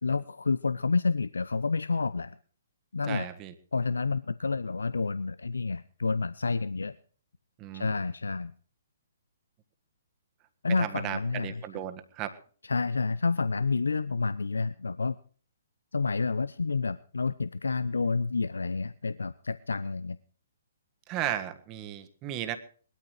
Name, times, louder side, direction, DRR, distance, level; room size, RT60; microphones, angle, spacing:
voice 1, 0.0-2.4 2.9-3.3 3.7-6.9 7.7-8.5 10.6-11.6 12.6-15.2 15.9-20.2, left 4 dB, 80° left, 16 dB, 0.6 m, -29 dB
voice 2, 3.1-3.5 7.6-7.9 10.8-12.4 21.1-22.6, right 12 dB, 25° right, 8 dB, 1.7 m, -35 dB
20.0 x 13.0 x 4.8 m, 0.44 s
figure-of-eight pair, 130°, 0 cm